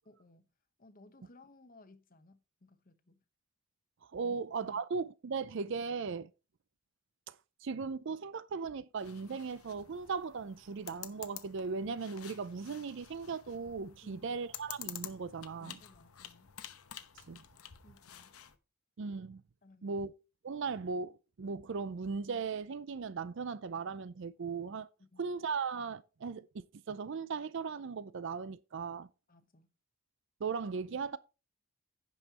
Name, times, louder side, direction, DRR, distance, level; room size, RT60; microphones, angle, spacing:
voice 1, 0.0-0.5 0.8-3.2 4.2-4.8 14.0-14.3 15.6-16.5 17.8-18.4 19.6-20.0 25.0-25.2 29.3-29.7, left 2 dB, 40° left, 1.0 m, -60 dB
voice 2, 4.0-6.3 7.3-15.8 17.2-17.4 19.0-19.4 19.8-20.1 20.4-24.9 25.2-29.1 30.4-31.2, right 5 dB, 55° right, 0.4 m, -38 dB
sound 1, 9.0-18.6, left 11 dB, 80° left, 0.9 m, -50 dB
16.0 x 5.4 x 2.9 m
head